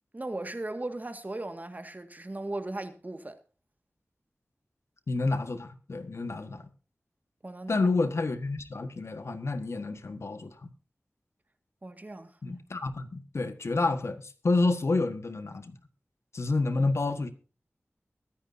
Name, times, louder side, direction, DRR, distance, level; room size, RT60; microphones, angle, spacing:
voice 1, 0.1-3.4 7.4-7.9 11.8-12.3, right 2 dB, 35° right, 1.8 m, -37 dB
voice 2, 5.1-6.6 7.7-10.7 12.4-15.8 16.3-17.3, left 3 dB, 75° left, 1.5 m, -29 dB
23.0 x 9.9 x 2.7 m
wide cardioid pair, 60°, 5 cm